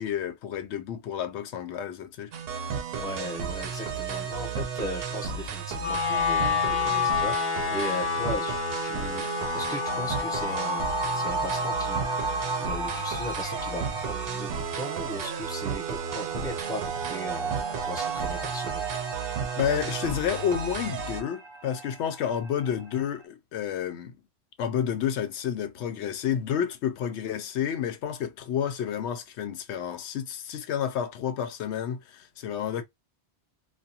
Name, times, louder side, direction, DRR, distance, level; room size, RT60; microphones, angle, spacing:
voice 1, 0.0-2.3 19.6-24.2 24.6-32.8, left 8 dB, 85° left, 0.8 m, -30 dB
sound 1, 2.3-21.2, right 6 dB, 70° right, 0.8 m, -33 dB
voice 2, 2.9-12.3 12.6-18.9, equal, 5° left, 0.7 m, -37 dB
Wind instrument woodwind instrument, 5.8-16.0, left 7 dB, 55° left, 0.7 m, -31 dB
sound 2, 9.4-23.1, right 4 dB, 35° right, 0.5 m, -36 dB
2.3 x 2.3 x 2.7 m
omnidirectional pair, 1.1 m